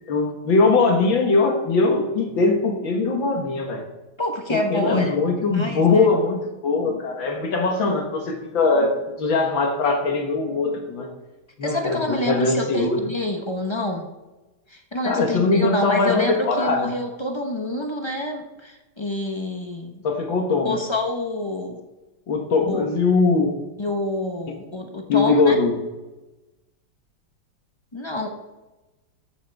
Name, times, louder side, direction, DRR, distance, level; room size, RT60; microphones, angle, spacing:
voice 1, 0.1-3.8 4.5-11.1 11.6-13.0 15.0-16.9 20.0-20.8 22.3-23.5 25.1-25.7, left 3 dB, 65° left, 3 dB, 2.1 m, -21 dB
voice 2, 4.2-5.2 5.4-6.1 11.6-14.1 14.7-20.0 20.6-21.8 22.7-22.8 23.8-25.6 27.9-28.3, left 1 dB, 25° left, 3 dB, 0.6 m, -27 dB
14.0 x 9.4 x 3.5 m, 1.1 s
omnidirectional pair, 2.3 m